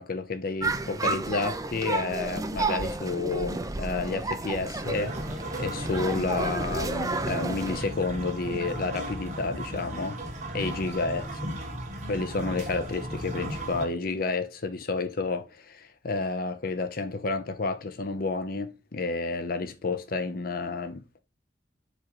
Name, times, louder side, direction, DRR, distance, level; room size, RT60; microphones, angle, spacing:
voice 1, 0.0-5.2 5.6-10.2 10.5-11.3 12.1-21.2, left 3 dB, 50° left, 0.7 m, -30 dB
sound 1, 0.6-7.8, right 2 dB, 20° right, 0.6 m, -31 dB
sound 2, 4.8-13.9, right 1 dB, 40° right, 1.8 m, -36 dB
5.1 x 4.5 x 4.4 m
head